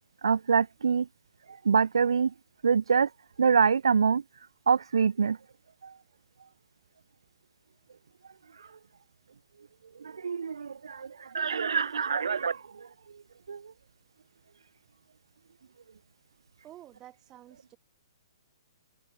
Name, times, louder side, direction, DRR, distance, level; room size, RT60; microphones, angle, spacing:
voice 1, 0.2-1.1 1.7-2.3 2.6-3.1 3.4-4.2 4.7-5.4 5.8-5.9 10.0-12.6 13.5-13.6, right 6 dB, 75° right, 0.4 m, -25 dB
voice 2, 16.6-17.8, right 13 dB, 25° right, 2.3 m, -51 dB
hypercardioid pair, 130°, 3 cm